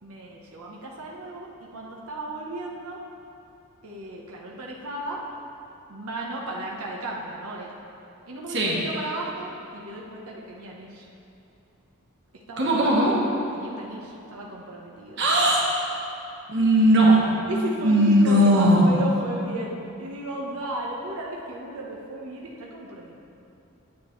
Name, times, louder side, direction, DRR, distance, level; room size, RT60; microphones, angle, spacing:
voice 1, 0.0-3.0 3.8-5.2 5.9-7.7 8.3-11.0 12.5-12.9 13.5-15.2 17.5-23.1, right 1 dB, 80° right, -3 dB, 1.0 m, -35 dB
voice 2, 12.6-13.2 15.2-15.7 16.5-17.3 17.8-18.9, right 1 dB, 55° right, -4 dB, 1.4 m, -18 dB
9.4 x 8.2 x 3.2 m, 2.9 s
head